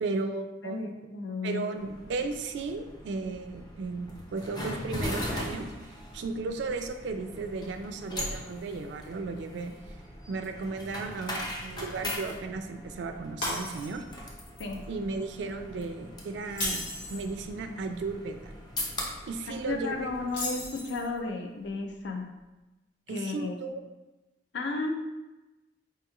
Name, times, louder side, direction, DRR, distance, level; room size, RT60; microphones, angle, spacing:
voice 1, 0.0-0.8 1.4-9.7 10.3-14.0 14.9-16.8 17.1-18.5 19.3-20.1 23.1-23.8, right 3 dB, 75° right, 6 dB, 0.3 m, -35 dB
voice 2, 0.6-1.7 14.6-14.8 19.7-22.3 23.1-23.6 24.5-24.9, left 3 dB, 75° left, 3 dB, 0.5 m, -33 dB
sound 1, 1.8-20.8, left 1 dB, 25° left, 0.5 m, -40 dB
Shatter, 13.4-14.2 14.6-14.8 16.4-17.3 20.3-21.2, left 1 dB, 90° left, 1.3 m, -34 dB
4.4 x 2.9 x 2.3 m, 1.1 s
head